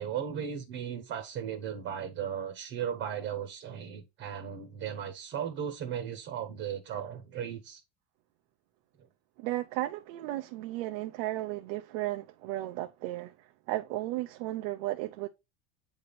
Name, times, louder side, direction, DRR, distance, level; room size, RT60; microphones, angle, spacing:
voice 1, 0.0-7.8, right 8 dB, 35° right, 1.0 m, -36 dB
voice 2, 9.4-15.3, right 16 dB, 75° right, 0.8 m, -34 dB
8.9 x 3.6 x 4.1 m
cardioid pair, 165°, 34 cm